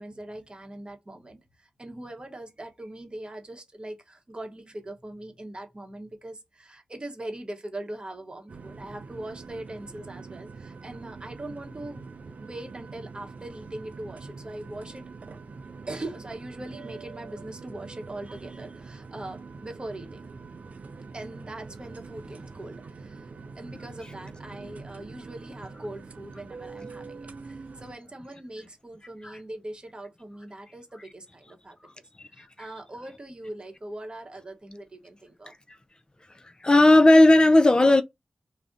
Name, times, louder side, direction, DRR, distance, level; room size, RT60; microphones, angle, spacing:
voice 1, 0.0-12.0 12.4-15.0 15.9-20.2 21.1-23.3 23.6-31.9 32.3-35.5, right 1 dB, 35° right, 0.8 m, -41 dB
sound 1, 8.5-28.0, right 4 dB, 60° right, 0.4 m, -44 dB
voice 2, 36.6-38.0, left 2 dB, 30° left, 0.4 m, -15 dB
2.5 x 2.1 x 3.7 m
cardioid pair, 45°, 3 cm